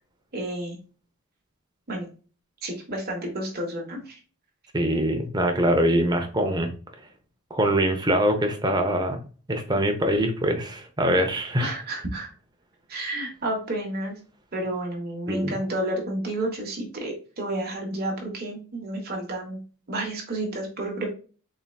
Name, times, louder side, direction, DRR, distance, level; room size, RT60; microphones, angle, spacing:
voice 1, 0.3-0.8 1.9-2.1 2.6-4.2 11.6-12.3 12.9-14.2 14.5-19.6 19.9-21.1, right 1 dB, 45° right, 0 dB, 1.1 m, -30 dB
voice 2, 4.7-6.7 7.5-9.2 9.5-11.7 15.3-15.5, right 1 dB, 20° right, 4 dB, 0.7 m, -23 dB
4.1 x 3.7 x 2.3 m, 0.37 s
head